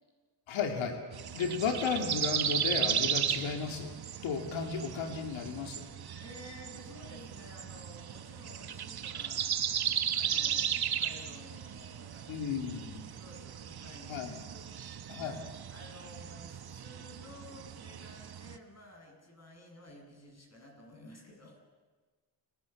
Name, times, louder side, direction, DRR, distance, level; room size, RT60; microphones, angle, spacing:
voice 1, 0.5-1.0 1.3-3.9 4.2-5.9 12.3-13.0 14.1-14.4 15.1-15.4, left 5 dB, 85° left, 4 dB, 2.8 m, -34 dB
sound 1, 1.1-18.6, right 9 dB, 55° right, 1.3 m, -36 dB
voice 2, 6.2-9.5 10.1-21.6, left 1 dB, 35° left, 1 dB, 7.8 m, -53 dB
28.5 x 17.5 x 7.3 m, 1.5 s
cardioid pair, 65°, 46 cm